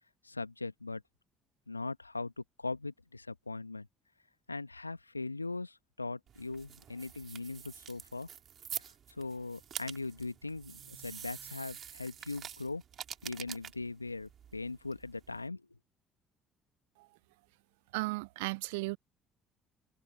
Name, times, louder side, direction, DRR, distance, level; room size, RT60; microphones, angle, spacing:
voice 1, 0.2-1.0 1.7-3.9 4.5-8.3 9.2-12.8 13.2-15.6, left 3 dB, 90° left, 1.7 m, -40 dB
sound 1, 6.3-15.5, right 9 dB, 45° right, 3.4 m, -47 dB
voice 2, 17.9-19.0, right 25 dB, 70° right, 0.4 m, -35 dB
figure-of-eight pair, 55°, 0 cm